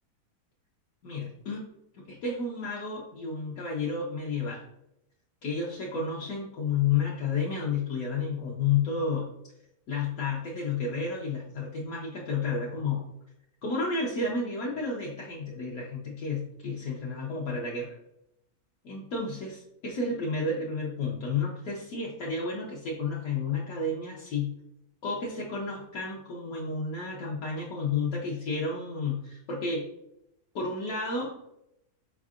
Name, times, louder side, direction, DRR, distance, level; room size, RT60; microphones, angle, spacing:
voice 1, 1.0-1.6 2.1-4.6 5.4-9.3 9.9-13.0 13.6-17.9 18.8-24.5 25.0-29.9 30.5-31.3, left 4 dB, 70° left, -3 dB, 1.1 m, -31 dB
4.1 x 3.6 x 2.4 m, 0.80 s
omnidirectional pair, 1.6 m